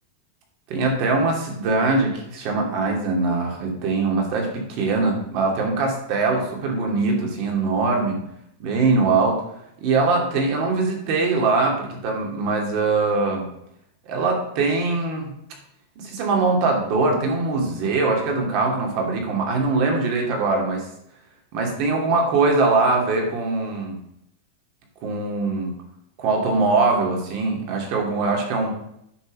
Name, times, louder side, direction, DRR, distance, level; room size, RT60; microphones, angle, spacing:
voice 1, 0.7-8.2 8.6-9.4 9.8-13.5 14.1-15.3 16.0-20.9 21.5-24.0 25.0-25.7 26.2-28.7, right 3 dB, 35° right, 1 dB, 2.6 m, -22 dB
9.9 x 5.5 x 6.5 m, 0.76 s
supercardioid pair, 175°, 0 cm